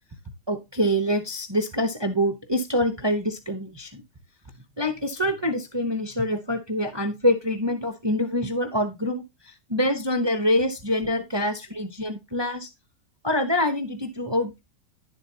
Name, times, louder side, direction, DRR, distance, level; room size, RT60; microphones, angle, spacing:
voice 1, 0.5-4.0 4.8-12.7 13.2-14.6, left 1 dB, 25° right, 7 dB, 0.6 m, -25 dB
11.0 x 7.4 x 2.8 m, 0.22 s
omnidirectional pair, 1.7 m